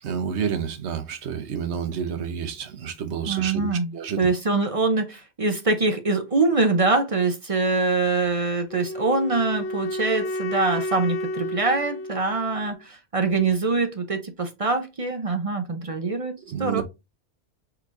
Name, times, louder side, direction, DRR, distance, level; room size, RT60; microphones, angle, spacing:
voice 1, 0.0-4.3 16.5-16.8, right 7 dB, 75° right, 1.1 m, -29 dB
voice 2, 3.3-16.8, right 3 dB, 40° right, 0.5 m, -24 dB
Wind instrument woodwind instrument, 8.7-12.8, left 1 dB, 80° left, 1.2 m, -31 dB
4.6 x 3.9 x 2.5 m
omnidirectional pair, 1.2 m